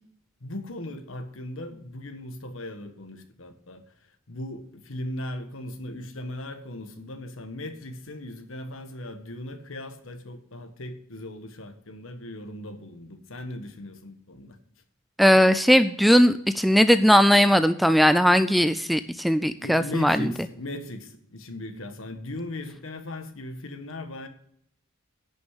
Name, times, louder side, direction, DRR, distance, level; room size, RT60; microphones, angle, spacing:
voice 1, 0.4-3.8 4.3-14.6 19.6-24.3, left 1 dB, 70° left, 1.4 m, -38 dB
voice 2, 15.2-20.3, equal, ahead, 0.3 m, -19 dB
10.5 x 6.6 x 6.3 m
head